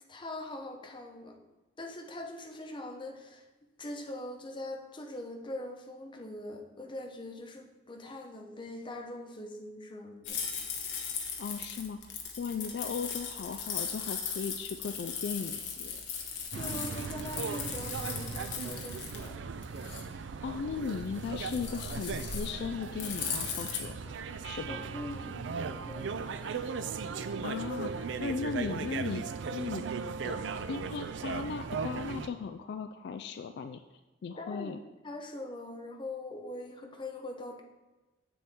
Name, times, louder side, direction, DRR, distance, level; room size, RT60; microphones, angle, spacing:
voice 1, 0.1-1.4 1.8-3.5 3.8-10.4 16.5-19.4 24.7-26.8 34.4-34.7 35.0-37.6, left 1 dB, 25° left, 3 dB, 0.8 m, -42 dB
sound 1, 10.2-23.8, left 6 dB, 80° left, 1.1 m, -38 dB
voice 2, 11.4-16.0 20.2-24.8 27.4-29.2 29.5-29.8 30.2-30.4 30.7-33.8 34.2-34.8, left 5 dB, 65° left, 8 dB, 0.3 m, -37 dB
sound 2, 16.5-32.3, right 5 dB, 80° right, 0.4 m, -37 dB
7.6 x 6.9 x 3.5 m, 1.1 s
head